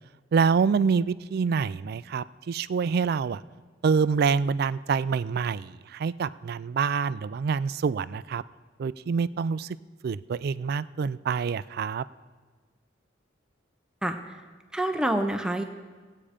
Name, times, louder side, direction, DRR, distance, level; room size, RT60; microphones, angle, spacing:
voice 1, 0.3-3.4 3.8-8.4 8.8-9.8 10.0-12.0, right 5 dB, 55° right, 17 dB, 0.3 m, -26 dB
voice 2, 14.0-14.3 14.7-15.6, right 1 dB, 5° right, 5 dB, 0.6 m, -27 dB
17.0 x 8.6 x 5.0 m, 1.4 s
head